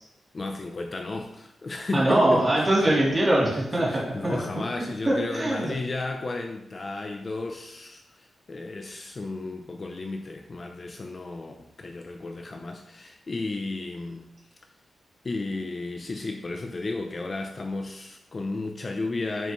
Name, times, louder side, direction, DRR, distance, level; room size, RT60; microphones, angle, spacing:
voice 1, 0.3-2.7 3.9-14.3 15.2-19.5, left 3 dB, 30° left, 4 dB, 0.5 m, -33 dB
voice 2, 1.9-4.4 4.8-5.7, right 1 dB, 20° right, -5 dB, 2.8 m, -23 dB
12.0 x 5.7 x 3.1 m, 0.81 s
wide cardioid pair, 180°, 0 cm